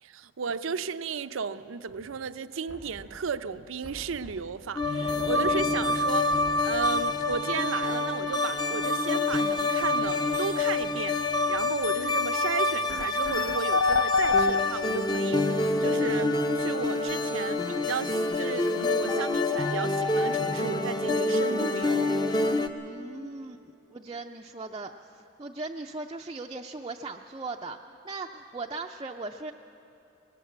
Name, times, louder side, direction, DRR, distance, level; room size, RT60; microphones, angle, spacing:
voice 1, 0.0-6.3 6.6-22.4, right 5 dB, 85° right, 0.6 m, -34 dB
Knock, 2.7-3.4 3.8-4.6 5.2-5.8 6.3-7.0, equal, 85° left, 4.2 m, -47 dB
sound 1, 4.8-22.7, left 2 dB, 20° left, 0.6 m, -27 dB
sound 2, 12.3-12.4 12.9-15.2, left 4 dB, 70° left, 0.4 m, -25 dB
voice 2, 22.8-23.6 23.9-29.5, right 3 dB, 25° right, 0.4 m, -38 dB
19.5 x 17.5 x 7.8 m
head